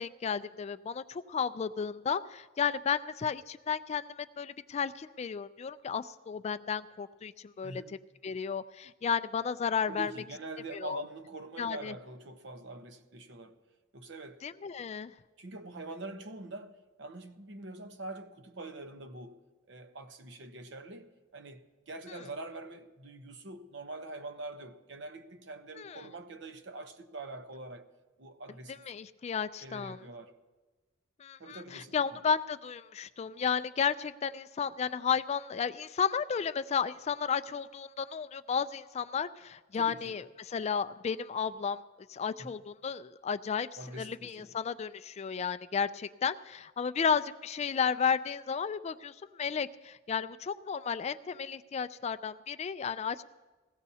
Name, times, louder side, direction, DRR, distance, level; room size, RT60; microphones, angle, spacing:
voice 1, 0.0-8.0 8.2-10.1 10.7-11.0 11.6-11.9 14.4-15.1 25.8-26.0 28.9-30.0 31.2-41.8 42.1-43.7 44.0-53.2, left 6 dB, 35° left, 0.3 m, -33 dB
voice 2, 7.6-7.9 9.9-13.6 13.9-14.4 15.4-19.4 19.7-27.9 28.2-28.8 29.6-30.3 31.4-32.2 39.7-40.2 42.4-42.6 43.8-44.5, right 2 dB, 65° right, 0.9 m, -44 dB
20.0 x 16.0 x 2.8 m
head